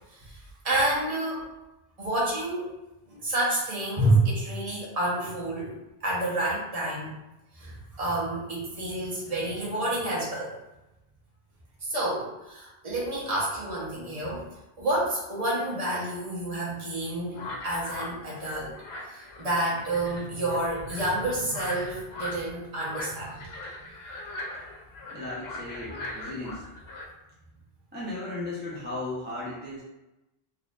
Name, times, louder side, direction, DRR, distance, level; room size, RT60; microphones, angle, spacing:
voice 1, 0.1-1.5 2.0-2.7 3.1-7.2 7.5-10.5 11.8-14.4 14.8-18.7 19.1-23.4, right 1 dB, 35° right, -6 dB, 1.1 m, -29 dB
sound 1, 17.4-27.1, left 1 dB, 75° left, 0.9 m, -40 dB
voice 2, 25.1-26.6 27.9-29.8, left 2 dB, 10° right, -7 dB, 0.7 m, -36 dB
4.1 x 2.8 x 2.4 m, 0.97 s
omnidirectional pair, 1.1 m